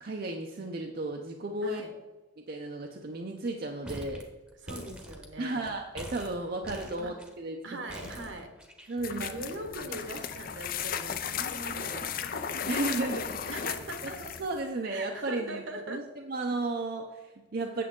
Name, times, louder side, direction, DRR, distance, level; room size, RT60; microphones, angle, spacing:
voice 1, 0.0-1.8 2.4-4.3 5.4-7.9 8.9-9.3 12.7-13.4 14.0-17.8, right 2 dB, 50° right, 2 dB, 0.6 m, -34 dB
voice 2, 1.6-1.9 4.6-5.7 7.0-7.1 7.6-8.5 8.8-13.2 13.5-14.2 14.9-16.0, right 2 dB, 70° right, 5 dB, 1.2 m, -41 dB
sound 1, 3.8-4.2 4.5-5.7 6.0-7.3 7.9-9.2, equal, 5° right, 0.9 m, -43 dB
sound 2, 9.0-14.6, left 7 dB, 45° left, 0.5 m, -35 dB
8.5 x 7.4 x 3.7 m, 1.1 s
head